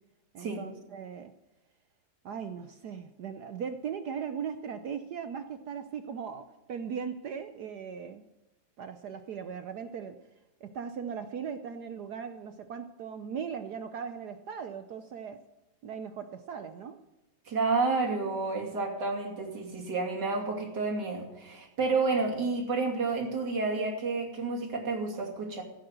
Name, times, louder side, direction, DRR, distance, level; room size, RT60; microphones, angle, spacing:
voice 1, 0.3-1.3 2.2-8.2 8.8-10.2 10.6-15.4 15.8-17.0, right 7 dB, 65° right, 9 dB, 1.0 m, -38 dB
voice 2, 17.5-25.6, right 3 dB, 50° right, 0 dB, 3.3 m, -30 dB
15.5 x 8.8 x 7.8 m, 1.0 s
omnidirectional pair, 2.4 m